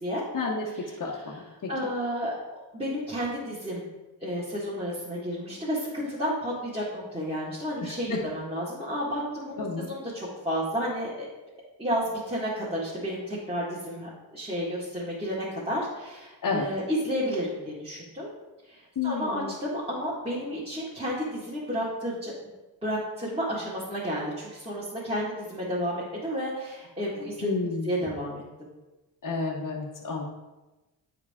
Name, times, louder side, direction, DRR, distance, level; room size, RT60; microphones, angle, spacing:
voice 1, 0.3-1.9 7.8-8.2 9.6-9.9 16.4-16.7 18.9-19.5 27.4-28.0 29.2-30.2, left 4 dB, 45° left, -4 dB, 1.0 m, -31 dB
voice 2, 1.7-2.4 2.7-3.9 4.2-11.3 11.8-18.3 18.7-22.3 22.8-28.4, equal, 15° right, -9 dB, 1.7 m, -31 dB
9.1 x 4.8 x 3.6 m, 1.1 s
cardioid pair, 105°, 45 cm